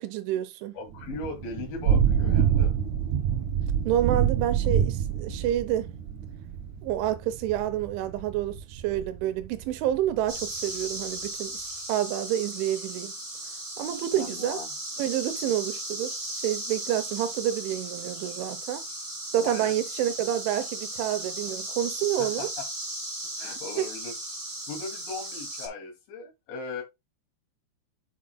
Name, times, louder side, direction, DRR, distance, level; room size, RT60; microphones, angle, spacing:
voice 1, 0.0-0.8 3.8-5.9 6.8-13.1 13.8-14.6 15.0-18.8 19.3-22.5 23.8-23.9, right 12 dB, 85° right, 3.3 m, -28 dB
voice 2, 0.7-2.7 14.2-14.7 19.4-19.7 22.2-22.5 23.4-24.1 24.7-26.8, left 4 dB, 75° left, 4.7 m, -38 dB
Thunder / Rain, 0.9-10.4, right 8 dB, 60° right, 2.2 m, -27 dB
sound 1, 10.3-25.7, right 1 dB, 25° right, 1.2 m, -36 dB
9.5 x 5.9 x 2.2 m
omnidirectional pair, 5.3 m